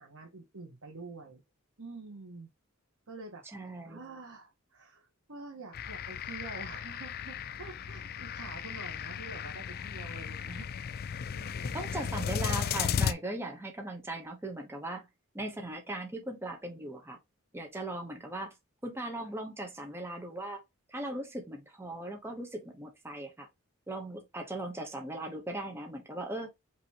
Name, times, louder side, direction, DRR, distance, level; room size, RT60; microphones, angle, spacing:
voice 1, 0.0-1.4 1.8-2.5 3.1-3.5 3.8-10.7 11.3-11.9, right 3 dB, 90° right, 1.3 m, -47 dB
voice 2, 3.5-4.0 11.7-15.1 15.3-17.2 17.5-18.5 18.8-20.6 20.9-23.5 23.9-26.5, right 1 dB, 10° right, 0.9 m, -38 dB
sound 1, 5.7-13.1, left 7 dB, 45° left, 0.4 m, -35 dB
5.3 x 2.9 x 2.9 m
head